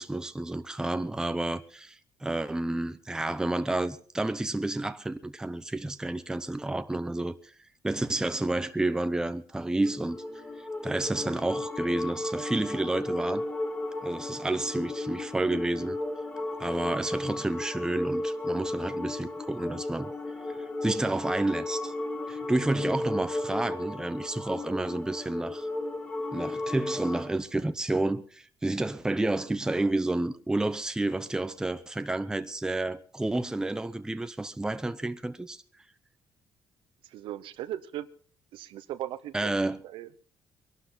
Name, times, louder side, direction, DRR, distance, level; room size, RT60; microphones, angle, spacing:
voice 1, 0.0-7.4 7.8-10.2 10.8-13.4 14.0-16.0 16.6-20.1 20.5-20.6 20.8-21.9 22.3-25.7 26.3-35.6 39.3-39.8, right 2 dB, 10° right, 0.7 m, -30 dB
sound 1, 9.7-27.3, left 2 dB, 15° left, 1.5 m, -34 dB
voice 2, 37.1-38.1 38.5-39.5 39.8-40.1, right 12 dB, 85° right, 0.8 m, -37 dB
22.5 x 12.0 x 4.0 m
cardioid pair, 135°, 8 cm